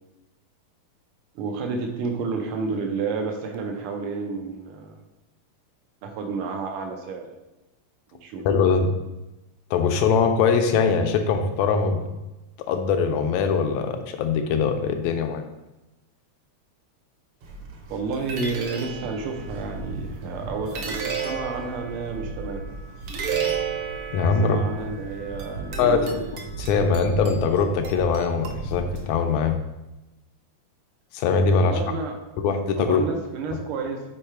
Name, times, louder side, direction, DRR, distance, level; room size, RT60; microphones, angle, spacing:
voice 1, 1.3-5.0 6.0-7.3 8.2-8.4 17.9-22.6 24.4-26.1 31.6-32.2 32.8-34.0, right 4 dB, 85° right, 3 dB, 1.2 m, -30 dB
voice 2, 8.5-8.9 9.7-12.0 12.6-15.4 24.1-24.6 25.8-29.6 31.1-31.8 32.4-33.0, left 5 dB, 80° left, 6 dB, 1.8 m, -22 dB
sound 1, 17.4-29.5, right 5 dB, 65° right, 1.4 m, -33 dB
5.2 x 4.6 x 4.4 m, 1.0 s
omnidirectional pair, 3.3 m